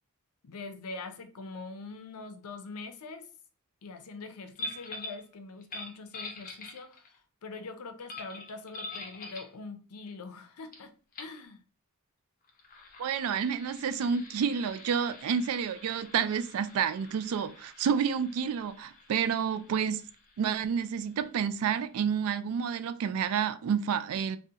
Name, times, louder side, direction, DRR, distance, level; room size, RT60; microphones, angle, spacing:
voice 1, 0.4-3.3 3.8-11.6, left 3 dB, 80° left, 0.5 m, -43 dB
sound 1, 4.5-5.2 5.6-7.1 8.1-9.5 10.7-10.8 11.1-11.4 12.4-21.7, left 2 dB, 40° left, 0.6 m, -45 dB
voice 2, 13.0-20.0 20.4-24.4, right 7 dB, 70° right, 0.3 m, -29 dB
3.6 x 2.1 x 2.7 m
head